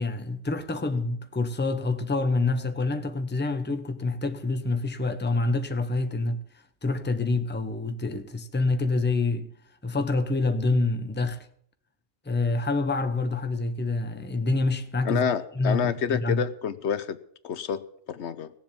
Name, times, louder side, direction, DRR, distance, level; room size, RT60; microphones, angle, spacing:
voice 1, 0.0-9.5 9.8-11.5 12.2-15.3 15.6-16.4, left 3 dB, 10° left, 0.8 m, -27 dB
voice 2, 15.0-17.2 17.4-18.5, left 7 dB, 70° left, 1.0 m, -28 dB
17.5 x 7.5 x 7.2 m
omnidirectional pair, 1.2 m